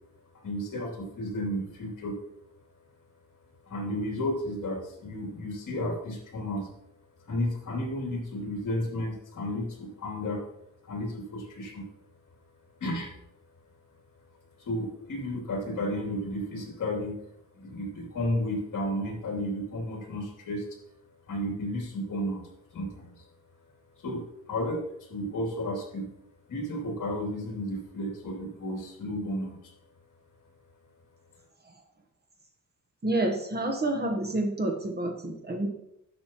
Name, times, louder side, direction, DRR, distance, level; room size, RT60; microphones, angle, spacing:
voice 1, 0.4-2.2 3.7-6.7 7.3-10.4 10.8-11.9 12.8-13.1 14.6-17.2 17.5-20.6 21.3-22.4 22.7-23.2 24.0-26.1 26.5-29.7, left 1 dB, 65° left, 0 dB, 3.0 m, -32 dB
voice 2, 33.0-35.7, right 1 dB, 30° right, 3 dB, 1.2 m, -28 dB
11.5 x 7.3 x 3.0 m, 0.77 s
wide cardioid pair, 155°, 33 cm